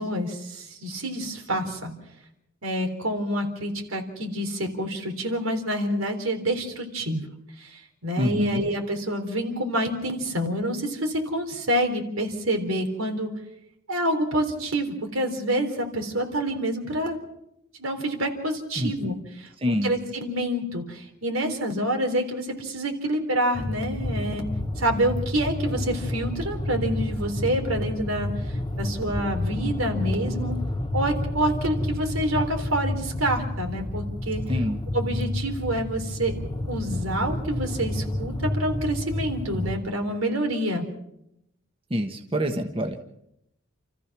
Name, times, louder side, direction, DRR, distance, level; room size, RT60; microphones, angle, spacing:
voice 1, 0.0-1.9 2.6-7.2 7.6-13.3 13.9-17.2 17.8-24.4 24.8-30.6 30.9-34.4 34.9-36.3 36.7-40.9, right 1 dB, 85° right, 4 dB, 3.7 m, -27 dB
voice 2, 8.2-8.6 18.8-19.2 19.6-19.9 34.5-34.8 41.9-43.1, equal, 25° right, 4 dB, 1.4 m, -26 dB
sound 1, 23.5-39.8, left 1 dB, 20° left, 1.4 m, -30 dB
29.0 x 14.5 x 6.1 m, 0.80 s
head